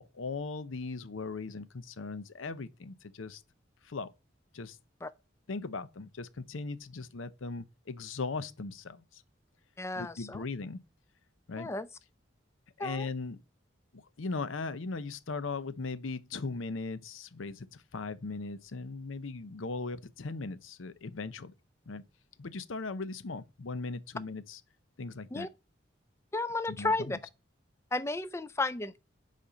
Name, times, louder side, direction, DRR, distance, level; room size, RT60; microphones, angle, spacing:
voice 1, 0.0-3.4 3.8-4.1 4.5-4.8 5.5-9.2 10.0-10.8 11.5-11.7 12.8-13.4 13.9-21.5 21.9-22.0 22.4-24.6 25.0-25.5 26.7-27.2, left 3 dB, 85° left, 0.7 m, -38 dB
voice 2, 9.8-10.4 11.6-11.9 12.8-13.1 25.3-25.5 26.3-27.2 27.9-29.0, left 2 dB, 15° left, 0.3 m, -33 dB
10.0 x 4.2 x 5.0 m
head